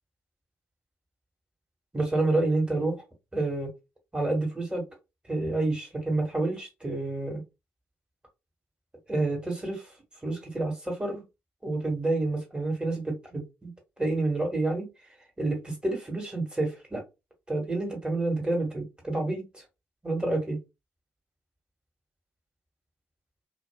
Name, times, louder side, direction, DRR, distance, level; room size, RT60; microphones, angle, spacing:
voice 1, 1.9-3.0 3.3-3.7 4.1-4.8 5.3-7.4 9.1-9.9 10.2-11.2 11.6-13.7 14.0-14.9 15.4-17.0 17.5-19.6 20.0-20.6, right 2 dB, 10° right, 1.7 m, -28 dB
2.6 x 2.5 x 2.2 m
hypercardioid pair, 45°, 8 cm